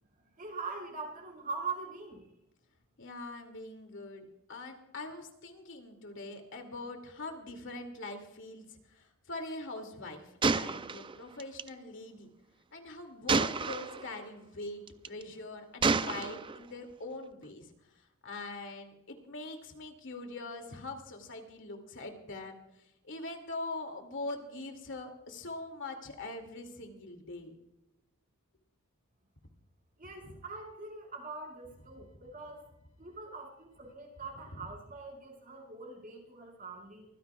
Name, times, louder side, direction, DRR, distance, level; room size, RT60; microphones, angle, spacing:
voice 1, 0.4-2.2 30.0-32.6 33.0-37.1, right 4 dB, 40° right, 0 dB, 4.9 m, -42 dB
voice 2, 3.0-12.3 12.7-17.7 18.2-27.5 34.5-34.6, left 2 dB, 60° left, 4 dB, 2.4 m, -43 dB
Gunshot gunfire, 10.4-11.7 13.3-14.0 14.9-15.2 15.8-16.6, right 4 dB, 25° right, 0.4 m, -29 dB
24.5 x 15.5 x 2.3 m, 0.86 s
head